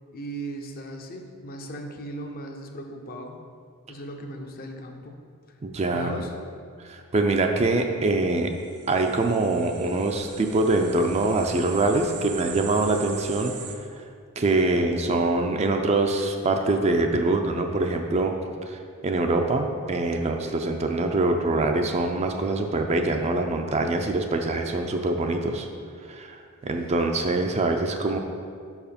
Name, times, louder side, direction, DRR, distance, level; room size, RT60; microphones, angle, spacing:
voice 1, 0.1-3.4 3.9-5.2 5.9-6.3, right 1 dB, 45° left, 3 dB, 0.6 m, -37 dB
voice 2, 5.6-6.2 6.8-8.5 8.9-13.5 14.4-18.4 18.7-25.7 26.1-28.2, right 2 dB, 30° right, 4 dB, 0.4 m, -24 dB
sound 1, 8.4-13.8, right 6 dB, 80° right, 0.7 m, -41 dB
5.5 x 4.8 x 5.1 m, 2.2 s
head